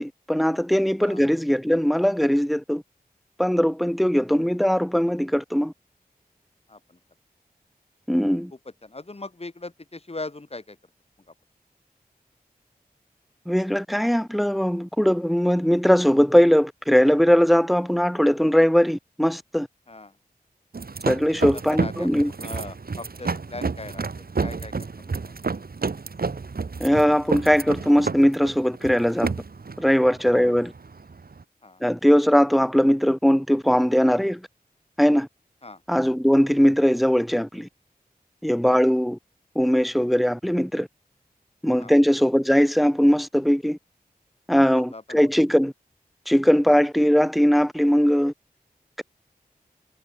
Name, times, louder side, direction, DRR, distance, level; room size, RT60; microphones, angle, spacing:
voice 1, 0.0-2.8 3.4-5.7 8.1-8.5 13.5-19.7 21.1-22.3 26.8-29.3 29.8-30.7 31.8-34.4 35.0-35.3 35.9-37.7 38.4-39.2 39.6-40.9 41.6-43.8 44.5-45.7 46.3-48.3, equal, ahead, 0.4 m, -20 dB
voice 2, 6.7-7.0 8.5-10.8 19.9-20.1 21.5-25.4 30.3-30.6 31.6-31.8 35.6-35.8 38.6-38.8 41.8-42.0 44.7-45.2, left 2 dB, 40° left, 5.4 m, -40 dB
sound 1, 20.7-31.4, right 4 dB, 70° right, 3.9 m, -30 dB
wide cardioid pair, 75°, 16 cm